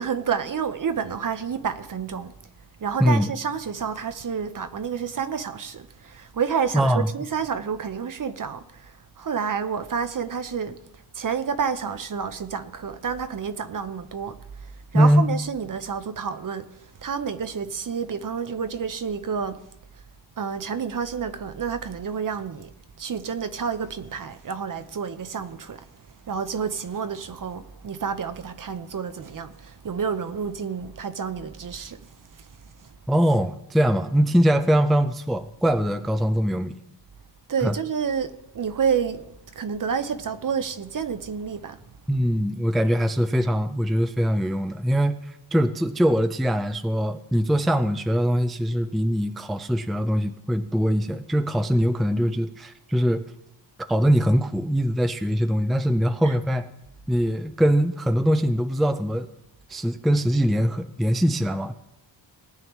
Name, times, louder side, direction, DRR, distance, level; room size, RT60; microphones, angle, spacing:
voice 1, 0.0-2.3 2.8-10.8 11.1-19.6 20.4-22.7 23.0-25.9 26.2-32.1 32.4-32.5 37.5-39.3 39.5-41.8 56.2-56.3, right 6 dB, 45° right, 0.8 m, -29 dB
voice 2, 3.0-3.3 6.7-7.1 14.9-15.3 33.1-36.7 37.6-37.8 42.1-53.2 53.9-56.7 57.1-59.3 59.7-61.7, equal, ahead, 0.5 m, -22 dB
19.0 x 9.0 x 3.1 m
wide cardioid pair, 100°, 44 cm